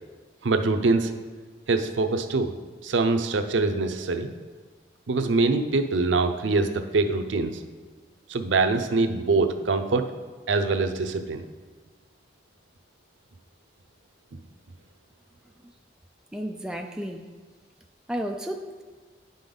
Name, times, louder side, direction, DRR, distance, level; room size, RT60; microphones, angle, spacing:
voice 1, 0.4-1.1 1.7-2.5 2.8-4.3 5.1-7.6 8.3-10.1 10.5-11.4, right 3 dB, 85° right, 7 dB, 0.6 m, -24 dB
voice 2, 16.3-17.2 18.1-18.8, equal, 5° right, 3 dB, 0.3 m, -32 dB
9.8 x 5.3 x 3.9 m, 1.4 s
head